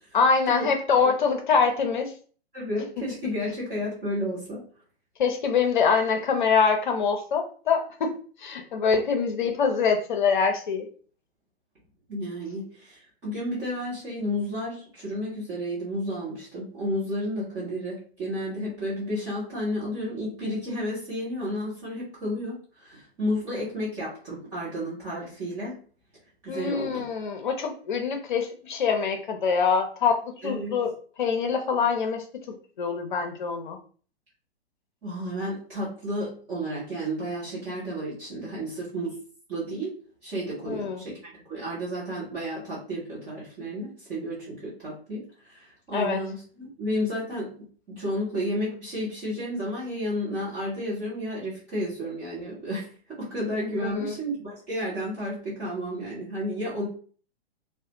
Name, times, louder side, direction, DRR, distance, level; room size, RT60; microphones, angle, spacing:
voice 1, 0.1-2.1 5.2-10.9 26.5-30.9 31.2-32.2 32.8-33.8 40.7-41.0 45.9-46.2 53.8-54.2, left 5 dB, 50° left, 5 dB, 0.6 m, -24 dB
voice 2, 2.5-4.6 12.1-25.8 26.4-27.0 30.4-30.7 35.0-39.2 39.5-39.9 40.2-45.2 45.5-47.5 47.9-52.9 53.2-56.9, equal, 10° right, -9 dB, 0.3 m, -32 dB
2.3 x 2.1 x 2.8 m, 0.42 s
figure-of-eight pair, 115°, 31 cm